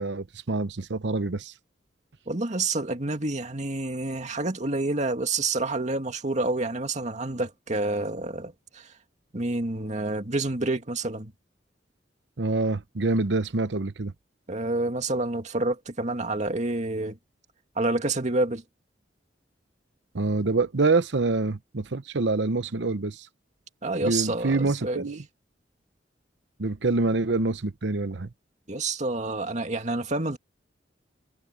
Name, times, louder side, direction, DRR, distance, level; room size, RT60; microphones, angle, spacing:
voice 1, 0.0-1.5 12.4-14.1 20.1-23.3 24.0-25.2 26.6-28.3, right 3 dB, 75° right, 0.9 m, -26 dB
voice 2, 2.3-8.9 9.3-11.3 14.5-17.2 17.8-18.6 23.8-25.0 28.7-30.4, right 2 dB, 40° right, 2.2 m, -28 dB
head